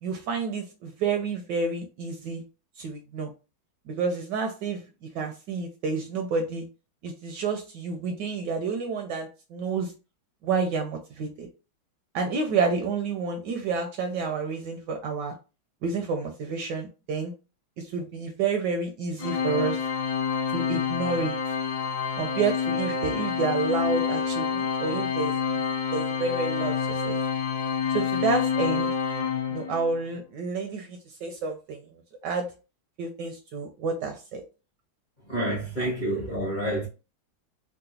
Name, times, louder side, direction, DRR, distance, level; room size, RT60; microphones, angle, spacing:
voice 1, 0.0-2.4 2.8-3.3 3.9-4.8 5.1-6.6 7.0-9.9 10.4-11.5 12.1-15.3 15.8-17.3 17.8-19.8 20.5-21.3 22.2-25.6 25.9-27.2 27.9-28.9 29.5-31.8 32.2-32.5 33.0-34.4, right 4 dB, 75° right, 1.0 m, -29 dB
Organ, 19.2-30.0, left 6 dB, 60° left, 1.3 m, -28 dB
voice 2, 35.3-36.9, right 1 dB, 45° left, 0.6 m, -28 dB
3.8 x 2.1 x 2.7 m
omnidirectional pair, 2.2 m